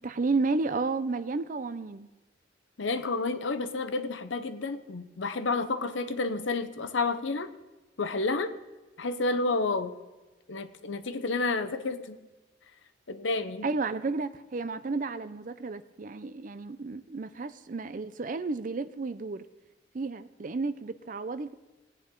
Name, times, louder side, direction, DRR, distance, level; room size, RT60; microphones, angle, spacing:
voice 1, 0.0-2.1 13.6-19.4 19.9-21.5, right 3 dB, 45° right, 13 dB, 0.5 m, -32 dB
voice 2, 2.8-7.5 8.0-8.5 9.0-9.9 10.5-12.2 13.1-13.7, left 3 dB, 90° left, 11 dB, 0.8 m, -30 dB
19.5 x 9.1 x 3.7 m, 1.2 s
head